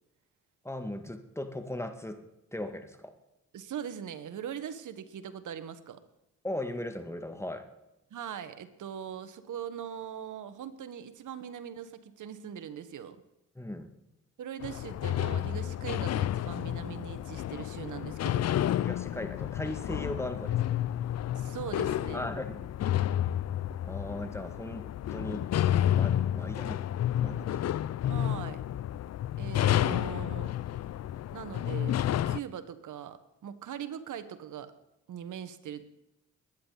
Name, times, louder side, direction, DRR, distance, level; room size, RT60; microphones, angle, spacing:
voice 1, 0.6-2.2 2.5-3.1 6.4-7.7 13.6-13.9 18.8-20.8 22.1-22.7 23.8-25.5 26.0-26.8 27.2-27.8, left 1 dB, 10° left, 7 dB, 1.9 m, -38 dB
voice 2, 3.5-6.0 8.1-13.2 14.4-18.4 21.3-22.2 27.5-27.6 28.0-28.6 29.4-30.5 31.3-32.0 32.3-34.7 35.1-35.9, right 9 dB, 70° right, 11 dB, 1.4 m, -41 dB
sound 1, 14.6-32.4, left 11 dB, 55° left, 0.5 m, -30 dB
21.5 x 10.0 x 4.1 m, 0.90 s
supercardioid pair, 60°, 32 cm